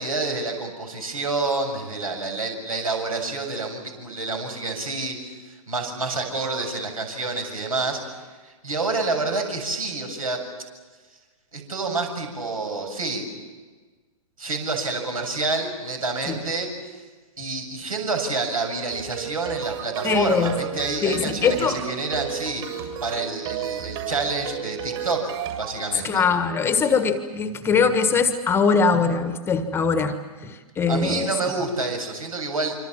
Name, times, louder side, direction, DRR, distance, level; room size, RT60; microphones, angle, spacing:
voice 1, 0.0-8.0 8.4-10.4 11.5-13.3 14.4-16.7 17.4-22.6 23.0-26.3 30.9-32.8, right 3 dB, 70° right, 3 dB, 7.5 m, -28 dB
sound 1, 18.9-25.8, right 9 dB, 45° right, 7.5 m, -33 dB
voice 2, 20.0-20.5 21.0-21.8 25.9-30.2 30.4-31.3, left 5 dB, 15° left, 9 dB, 1.5 m, -22 dB
26.5 x 26.0 x 7.4 m, 1.4 s
figure-of-eight pair, 115°, 18 cm